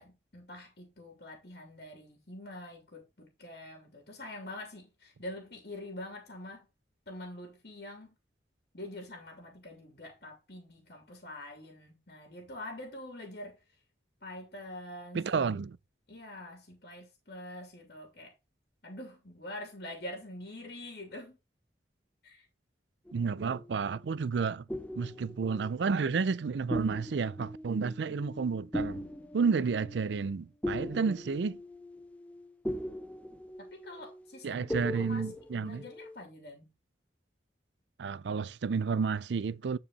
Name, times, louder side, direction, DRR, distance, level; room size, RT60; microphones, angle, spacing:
voice 1, 0.0-6.7 7.1-8.2 8.7-13.6 14.2-15.2 16.1-18.3 18.8-21.4 22.2-22.5 33.6-35.2 35.6-36.7, left 1 dB, 60° left, 2.5 m, -45 dB
voice 2, 15.1-15.8 23.1-24.6 25.0-29.1 29.3-31.6 34.4-35.8 38.0-39.8, right 5 dB, 80° right, 0.4 m, -31 dB
sound 1, 23.1-24.1 24.7-26.4 26.7-36.2, left 1 dB, 10° left, 0.6 m, -40 dB
10.0 x 4.8 x 4.1 m
head